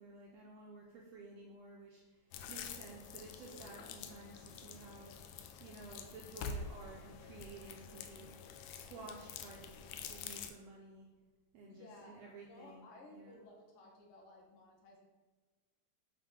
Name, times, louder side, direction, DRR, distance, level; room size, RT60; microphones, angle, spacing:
voice 1, 0.0-5.1 5.6-8.3 8.7-9.8 10.1-11.1 11.5-13.4, right 3 dB, 85° right, -2 dB, 1.4 m, -53 dB
sound 1, 2.3-10.5, left 6 dB, 85° left, 1.6 m, -47 dB
voice 2, 11.7-12.1 12.5-15.1, left 2 dB, 70° left, -1 dB, 2.4 m, -57 dB
7.0 x 2.9 x 4.9 m, 1.3 s
omnidirectional pair, 3.8 m